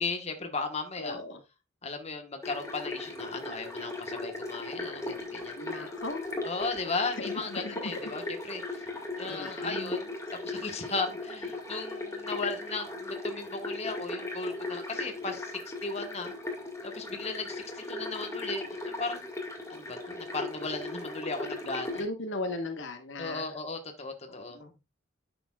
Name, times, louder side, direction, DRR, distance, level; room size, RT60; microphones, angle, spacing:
voice 1, 0.0-1.2 1.8-5.9 6.4-8.8 9.2-10.1 10.4-16.3 16.8-19.3 19.7-22.0 23.2-24.6, left 3 dB, 30° left, 5 dB, 1.3 m, -36 dB
voice 2, 1.0-1.4 5.6-6.5 7.2-8.1 8.8-8.9 9.2-9.9 22.0-23.5 24.4-24.7, left 2 dB, 60° left, 6 dB, 1.3 m, -37 dB
sound 1, 2.4-22.0, left 2 dB, 15° left, 2.0 m, -38 dB
11.0 x 6.9 x 2.4 m, 0.25 s
head